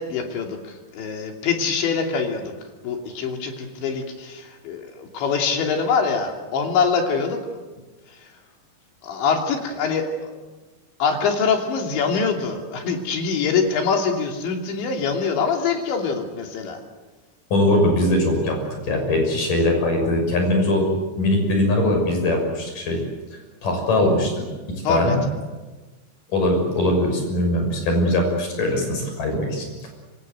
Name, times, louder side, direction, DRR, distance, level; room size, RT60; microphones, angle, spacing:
voice 1, 0.0-2.5 2.8-7.4 8.1-8.2 9.0-10.3 11.0-16.8 24.9-25.2, left 5 dB, 80° left, 3 dB, 5.2 m, -24 dB
voice 2, 17.5-18.6 18.8-20.9 21.2-23.0 23.3-24.3 24.9-25.2 26.3-29.9, left 1 dB, 45° left, 3 dB, 7.6 m, -21 dB
26.0 x 25.5 x 7.9 m, 1.2 s
omnidirectional pair, 5.2 m